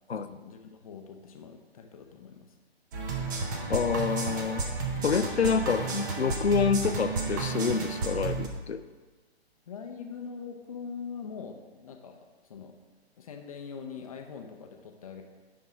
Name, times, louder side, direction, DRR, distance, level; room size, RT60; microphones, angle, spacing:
voice 1, 0.2-2.5 9.7-12.7 13.2-15.2, left 6 dB, 35° left, 4 dB, 0.6 m, -43 dB
sound 1, 2.9-8.5, right 4 dB, 20° right, 0.5 m, -32 dB
voice 2, 3.7-4.6 5.0-8.8, left 6 dB, 80° left, 11 dB, 0.5 m, -27 dB
10.0 x 3.7 x 4.8 m, 1.3 s
figure-of-eight pair, 125°, 32 cm